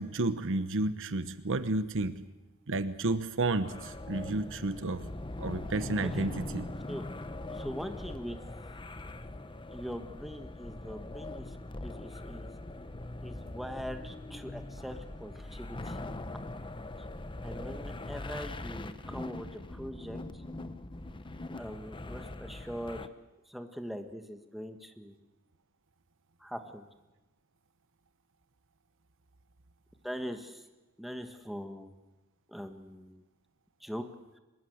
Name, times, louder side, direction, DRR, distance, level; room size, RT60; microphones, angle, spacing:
voice 1, 0.0-2.2 2.7-5.1 5.4-6.7, right 2 dB, 60° right, 12 dB, 1.1 m, -31 dB
sound 1, 3.6-23.1, left 2 dB, 20° left, 0.8 m, -41 dB
voice 2, 7.5-8.4 9.7-12.5 13.2-16.0 17.4-20.4 21.5-23.1 23.5-25.2 26.4-26.9 30.0-30.6 31.0-31.9 32.5-33.2 33.8-34.0, equal, ahead, 6 dB, 1.5 m, -42 dB
24.0 x 21.0 x 8.0 m, 1.1 s
head